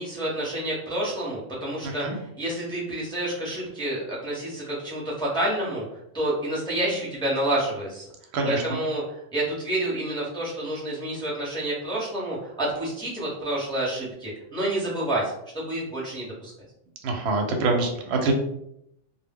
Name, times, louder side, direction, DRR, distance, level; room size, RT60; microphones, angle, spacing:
voice 1, 0.0-8.1 8.4-16.5, right 1 dB, 5° left, -6 dB, 0.7 m, -29 dB
voice 2, 17.0-18.3, right 3 dB, 65° right, 3 dB, 0.8 m, -24 dB
2.2 x 2.1 x 3.4 m, 0.77 s
omnidirectional pair, 1.3 m